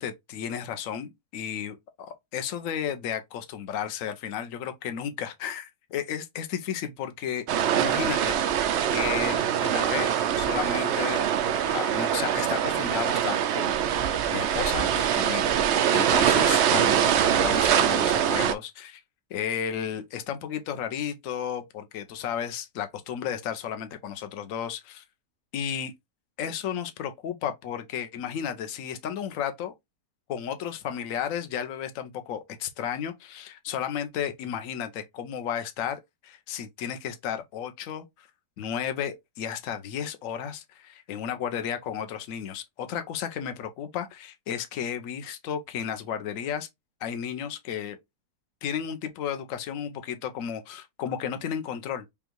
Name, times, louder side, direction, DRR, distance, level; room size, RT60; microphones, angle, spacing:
voice 1, 0.0-7.4 7.7-13.8 14.3-19.0 19.3-25.0 25.5-25.9 26.4-29.7 30.3-38.3 38.6-46.7 47.0-48.0 48.6-52.0, left 8 dB, 60° left, 1.0 m, -33 dB
sound 1, 7.5-18.5, right 9 dB, 85° right, 0.5 m, -24 dB
5.3 x 2.3 x 3.0 m
omnidirectional pair, 1.7 m